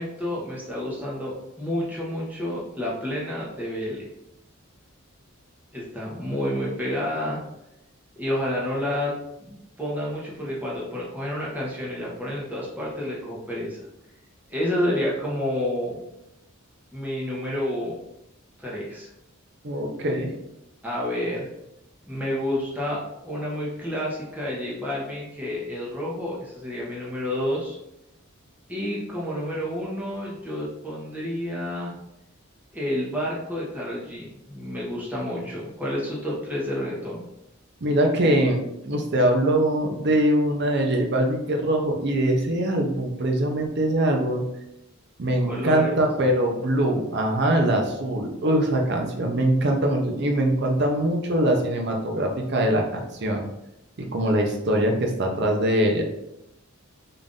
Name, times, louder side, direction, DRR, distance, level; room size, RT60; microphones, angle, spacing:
voice 1, 0.0-4.0 5.7-7.4 8.1-9.1 9.4-13.8 14.5-16.0 16.9-18.0 18.6-19.1 20.8-21.5 22.1-27.8 28.7-31.9 32.7-37.2 45.4-46.0, left 1 dB, 10° right, -5 dB, 0.9 m, -29 dB
voice 2, 19.6-20.3 37.8-44.5 45.2-53.5 54.0-56.0, right 1 dB, 55° right, 2 dB, 0.6 m, -23 dB
3.8 x 2.6 x 3.6 m, 0.85 s
head